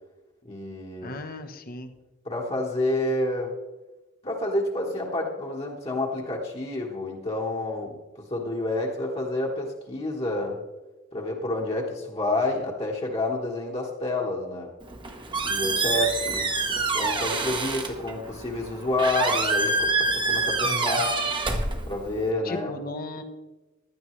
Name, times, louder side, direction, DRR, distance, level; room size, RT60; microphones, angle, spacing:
voice 1, 0.4-1.2 2.2-3.6 4.2-8.0 8.3-10.6 11.1-14.7 15.4-16.6 16.9-21.2 21.9-22.7, left 2 dB, 30° left, -2 dB, 1.4 m, -29 dB
voice 2, 1.0-1.9 20.6-21.0 22.4-23.2, left 2 dB, 50° left, 7 dB, 1.0 m, -36 dB
Squeak, 14.8-22.3, right 3 dB, 25° right, 1.0 m, -27 dB
16.0 x 11.0 x 3.2 m, 1.1 s
head